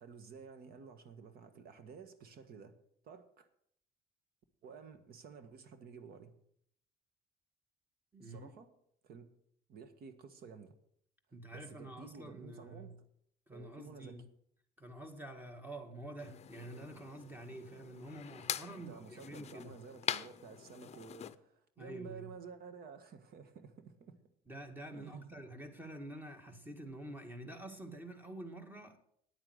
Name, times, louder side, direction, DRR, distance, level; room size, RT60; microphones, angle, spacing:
voice 1, 0.0-2.7 3.0-3.5 4.6-6.3 8.2-8.7 9.0-9.2 9.7-10.7 11.5-12.9 13.5-14.2 18.9-24.2 24.9-25.3, right 6 dB, 65° right, 1.5 m, -52 dB
voice 2, 8.1-8.5 11.3-13.0 13.5-14.3 14.8-19.8 21.8-22.3 24.5-29.0, right 1 dB, 10° right, 2.0 m, -48 dB
sound 1, 16.2-21.3, left 9 dB, 40° left, 0.6 m, -43 dB
9.7 x 9.1 x 6.4 m
cardioid pair, 110°, 17 cm